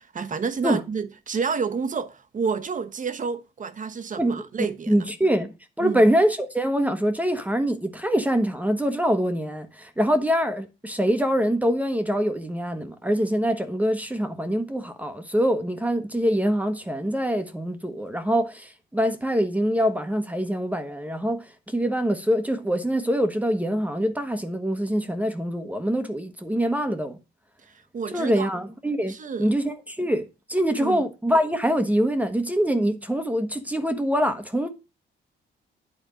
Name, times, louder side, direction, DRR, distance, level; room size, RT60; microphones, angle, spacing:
voice 1, 0.0-5.0 5.8-6.0 27.6-28.5 29.1-29.5 30.8-31.0, right 5 dB, 40° right, 1.1 m, -30 dB
voice 2, 4.2-27.2 28.1-34.7, equal, 5° right, 1.2 m, -24 dB
9.2 x 4.3 x 6.3 m
cardioid pair, 90°, 20 cm